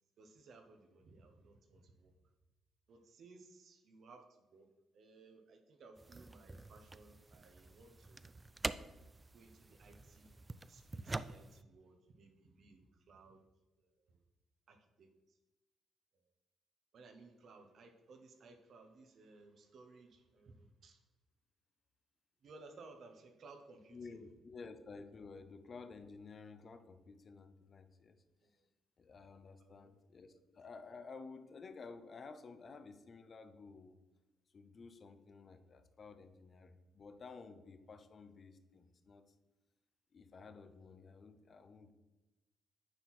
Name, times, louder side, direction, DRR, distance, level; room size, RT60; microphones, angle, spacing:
voice 1, 0.2-2.1 2.9-4.7 4.9-8.2 9.3-10.4 10.7-13.4 13.8-14.2 14.7-15.4 16.9-21.0 22.4-24.2 28.4-28.7 29.6-29.8 30.3-30.4, right 3 dB, 60° right, 6 dB, 1.2 m, -60 dB
sound 1, 6.0-11.6, right 3 dB, 20° right, 0.3 m, -46 dB
voice 2, 23.9-28.2 29.0-34.0 34.5-39.2 40.1-41.9, left 4 dB, 45° left, 9 dB, 0.8 m, -53 dB
9.6 x 4.6 x 4.3 m, 1.1 s
cardioid pair, 90°, 0 cm